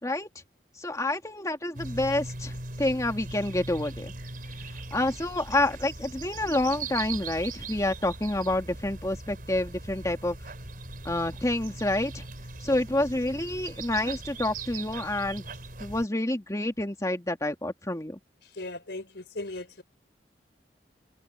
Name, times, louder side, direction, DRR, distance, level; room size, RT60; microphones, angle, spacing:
voice 1, 0.8-4.1 4.9-10.4 11.0-12.2 12.6-15.4 15.8-18.2, left 1 dB, 20° left, 2.1 m, -28 dB
sound 1, 1.7-16.0, right 3 dB, 50° right, 4.8 m, -40 dB
voice 2, 18.4-19.8, left 2 dB, 70° left, 4.5 m, -38 dB
head